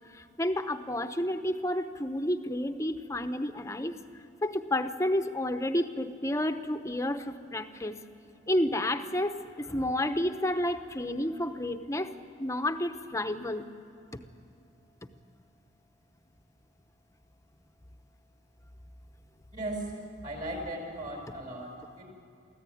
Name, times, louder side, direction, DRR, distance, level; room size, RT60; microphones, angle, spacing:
voice 1, 0.1-4.0 4.4-8.0 8.5-12.1 12.4-13.7 14.1-14.2, left 1 dB, 15° left, 8 dB, 0.9 m, -30 dB
voice 2, 19.5-20.0 20.2-22.0, right 1 dB, 45° right, 1 dB, 5.2 m, -37 dB
24.0 x 15.0 x 9.2 m, 2.7 s
head